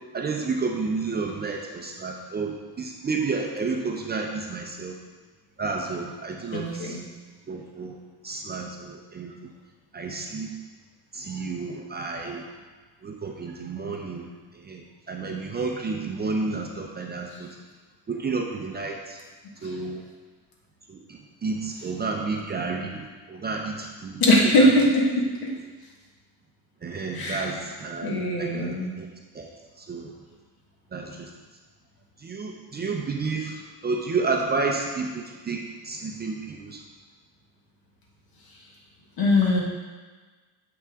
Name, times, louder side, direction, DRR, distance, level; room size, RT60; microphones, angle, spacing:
voice 1, 0.1-4.9 5.6-7.0 7.5-8.0 8.2-9.5 9.9-10.5 11.1-12.5 13.0-14.3 14.5-17.6 18.1-19.2 19.6-20.0 20.9-24.8 26.8-29.1 29.3-29.5 29.8-30.1 30.9-31.3 32.2-36.8, right 4 dB, 25° right, 1 dB, 0.5 m, -31 dB
voice 2, 6.5-7.0 24.2-25.0 25.4-25.5 27.1-27.5 28.0-28.9 39.2-39.6, left 1 dB, 60° left, -1 dB, 1.6 m, -21 dB
7.0 x 5.9 x 3.5 m, 1.4 s
cardioid pair, 145°, 41 cm